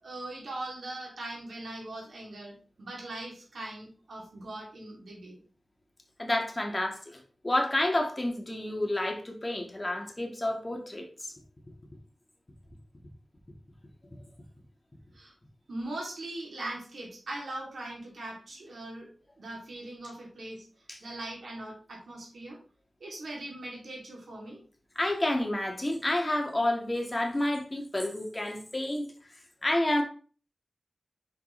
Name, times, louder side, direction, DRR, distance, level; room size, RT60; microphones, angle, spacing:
voice 1, 0.0-5.4 15.1-15.3 15.7-19.1 19.4-20.6 21.0-22.6 23.0-24.6, right 2 dB, 75° right, -2 dB, 2.8 m, -40 dB
voice 2, 6.2-11.3 20.9-21.0 24.9-29.1 29.6-30.0, left 1 dB, 30° left, 2 dB, 1.7 m, -29 dB
5.8 x 5.8 x 3.3 m, 0.39 s
cardioid pair, 55°, 0 cm